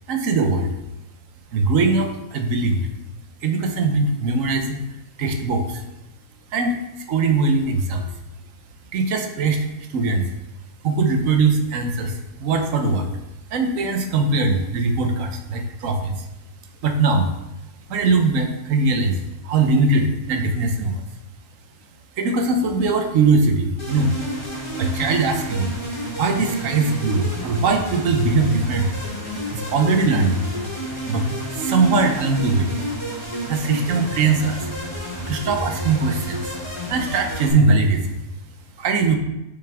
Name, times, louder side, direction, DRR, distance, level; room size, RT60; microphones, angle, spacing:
voice 1, 0.1-0.7 1.5-2.9 3.4-4.8 5.2-5.8 6.5-6.8 7.1-8.1 8.9-10.3 10.8-13.1 13.5-16.3 16.8-17.3 17.9-19.2 19.4-21.0 22.2-24.1 24.8-25.7 26.2-29.0 29.5-30.5 31.1-31.3 31.5-32.7 33.4-34.7 35.3-36.5 36.9-38.2 38.8-39.2, right 3 dB, 60° right, 6 dB, 1.1 m, -21 dB
sound 1, 23.8-37.5, right 1 dB, 20° left, 1.6 m, -30 dB
6.9 x 5.8 x 3.5 m, 0.95 s
omnidirectional pair, 1.7 m